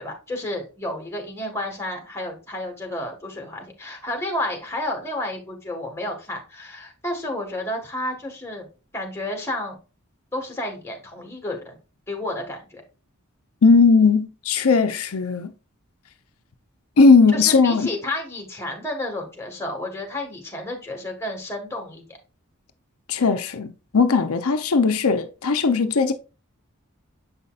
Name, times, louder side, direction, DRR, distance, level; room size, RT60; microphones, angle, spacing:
voice 1, 0.0-8.7 8.9-9.8 10.3-11.8 12.1-12.8 17.3-22.2, left 1 dB, 10° left, 1.7 m, -31 dB
voice 2, 13.6-15.5 17.0-17.9 23.1-26.1, left 4 dB, 90° left, 0.7 m, -18 dB
7.4 x 5.5 x 2.4 m
head